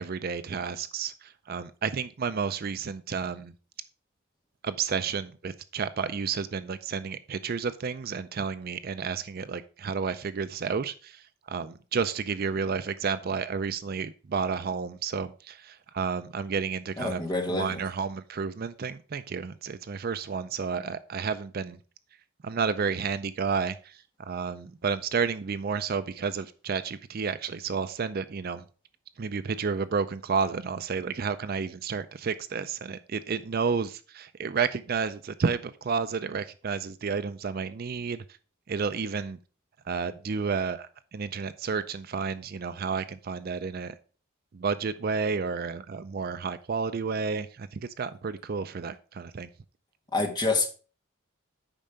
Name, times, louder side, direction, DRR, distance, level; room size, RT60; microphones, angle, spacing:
voice 1, 0.0-3.5 4.6-17.2 17.5-21.8 22.4-28.6 29.2-38.2 38.7-39.4 39.9-43.9 44.5-49.5, right 5 dB, 45° right, 13 dB, 0.4 m, -31 dB
voice 2, 17.0-17.8 50.1-50.7, left 3 dB, 20° left, 3 dB, 1.5 m, -27 dB
8.9 x 5.5 x 5.0 m, 0.37 s
head